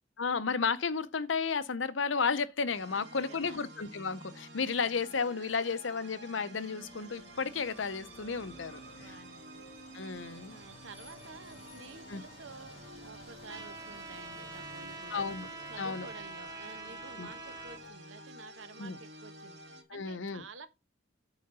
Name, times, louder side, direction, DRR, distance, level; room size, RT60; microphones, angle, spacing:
voice 1, 0.2-9.2 9.9-10.6 12.1-12.2 15.1-15.5 15.8-16.1 17.2-17.3 18.8-19.0 19.9-20.4, left 5 dB, 75° left, 0.8 m, -33 dB
sound 1, 2.7-19.8, right 1 dB, 65° right, 2.2 m, -51 dB
voice 2, 2.9-3.6 9.0-9.6 10.5-15.3 15.7-19.6 19.9-20.7, right 4 dB, 85° right, 1.0 m, -51 dB
sound 2, 6.8-17.9, left 1 dB, 30° left, 2.2 m, -57 dB
Trumpet, 13.5-17.8, right 3 dB, 20° right, 1.0 m, -45 dB
9.1 x 3.9 x 5.5 m
head